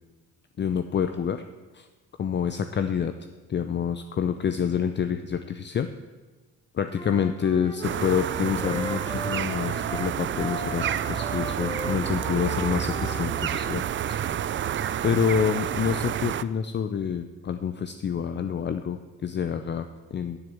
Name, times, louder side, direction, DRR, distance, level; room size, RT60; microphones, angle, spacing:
voice 1, 0.6-1.4 1.7-1.9 2.2-3.1 3.5-5.9 6.7-13.8 15.0-20.4, left 7 dB, 35° left, 9 dB, 0.6 m, -27 dB
Wind instrument woodwind instrument, 6.9-13.8, left 1 dB, 15° left, 1.4 m, -38 dB
sound 1, 7.8-16.4, right 9 dB, 40° right, 0.4 m, -29 dB
11.0 x 6.7 x 7.7 m, 1.3 s
cardioid pair, 90°, 30 cm